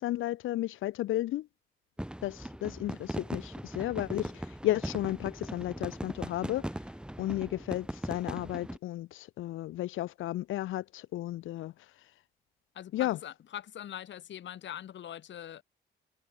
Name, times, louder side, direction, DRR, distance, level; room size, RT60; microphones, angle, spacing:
voice 1, 0.0-1.5 2.2-6.7 7.2-11.7 12.9-13.2, left 15 dB, 85° left, 1.9 m, -33 dB
sound 1, 2.0-8.8, right 1 dB, 5° right, 6.4 m, -39 dB
voice 2, 12.7-15.6, left 10 dB, 65° left, 4.0 m, -42 dB
cardioid pair, 90°, 20 cm